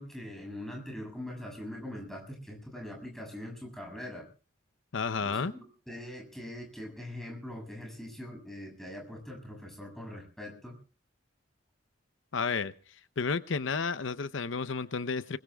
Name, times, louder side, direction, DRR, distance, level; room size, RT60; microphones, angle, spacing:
voice 1, 0.0-4.3 5.2-10.8, left 1 dB, ahead, 1 dB, 7.0 m, -42 dB
voice 2, 4.9-5.5 12.3-12.7 13.2-15.4, left 5 dB, 85° left, 13 dB, 0.7 m, -31 dB
25.5 x 21.5 x 2.3 m, 0.37 s
head